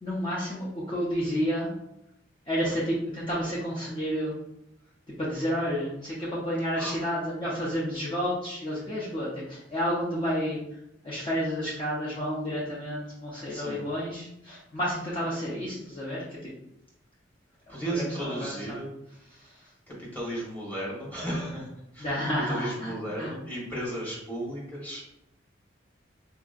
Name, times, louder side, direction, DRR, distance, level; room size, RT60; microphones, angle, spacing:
voice 1, 0.0-1.7 2.5-4.4 5.2-10.6 11.0-16.5 17.9-18.8 19.4-19.6 22.0-23.3, equal, 30° left, -7 dB, 0.7 m, -30 dB
voice 2, 17.7-18.9 19.9-21.7 21.9-22.1 22.5-25.0, right 1 dB, 10° left, -5 dB, 1.2 m, -34 dB
4.5 x 2.9 x 2.4 m, 0.83 s
head